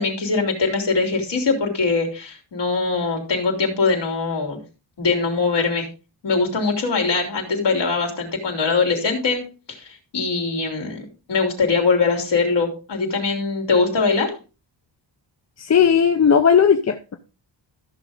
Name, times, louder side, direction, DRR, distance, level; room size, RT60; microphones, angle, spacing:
voice 1, 0.0-4.6 5.0-5.9 6.2-9.4 9.8-9.9 10.1-14.3, left 4 dB, 65° left, 0 dB, 3.6 m, -22 dB
voice 2, 15.6-17.2, left 7 dB, 35° left, 6 dB, 0.7 m, -16 dB
14.5 x 6.3 x 3.8 m, 0.33 s
wide cardioid pair, 155°, 45 cm